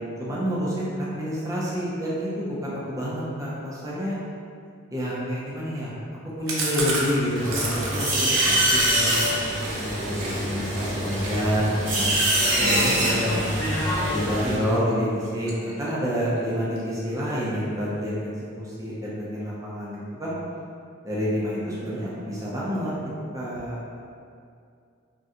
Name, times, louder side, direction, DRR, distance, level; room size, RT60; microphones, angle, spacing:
voice 1, 0.2-4.2 4.9-5.9 6.4-9.1 9.7-12.1 12.6-13.5 14.1-18.2 18.6-20.3 21.0-22.9 23.3-23.8, equal, 15° right, -7 dB, 0.5 m, -28 dB
Chewing mastication, 6.5-10.4 10.7-10.9 11.2-14.2 14.6-14.9 15.2-16.1 16.4-16.5 16.8-16.9 17.2-17.7, right 2 dB, 75° right, 0.6 m, -33 dB
sound 1, 7.4-14.6, right 1 dB, 40° right, 0.9 m, -24 dB
voice 2, 12.6-13.4, left 1 dB, 55° left, -2 dB, 0.4 m, -31 dB
2.7 x 2.2 x 3.6 m, 2.4 s
head